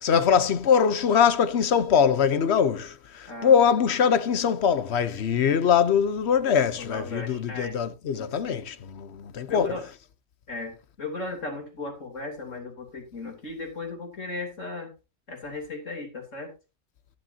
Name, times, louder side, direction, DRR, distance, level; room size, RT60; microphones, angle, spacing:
voice 1, 0.0-9.7, left 7 dB, 65° left, 1.1 m, -22 dB
voice 2, 6.8-7.8 8.1-8.6 9.5-9.9 10.5-14.9 15.3-16.5, left 3 dB, 85° left, 3.6 m, -36 dB
13.5 x 10.0 x 2.7 m
omnidirectional pair, 1.3 m